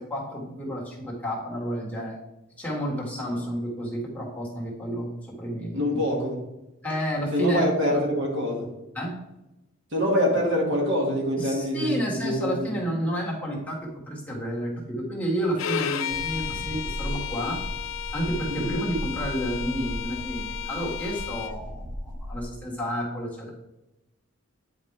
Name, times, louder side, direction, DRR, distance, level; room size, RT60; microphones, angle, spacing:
voice 1, 0.0-2.2 2.6-6.0 6.8-7.7 7.9-8.0 8.9-9.2 11.4-17.6 18.1-23.5, equal, 10° left, -4 dB, 1.9 m, -30 dB
voice 2, 5.7-6.4 7.3-8.7 9.9-12.8 18.5-18.7, equal, 65° right, -1 dB, 2.0 m, -25 dB
Bowed string instrument, 15.6-21.6, left 10 dB, 90° left, 0.5 m, -33 dB
sound 1, 16.1-22.5, equal, 45° right, 0.7 m, -36 dB
9.5 x 5.1 x 3.4 m, 0.93 s
head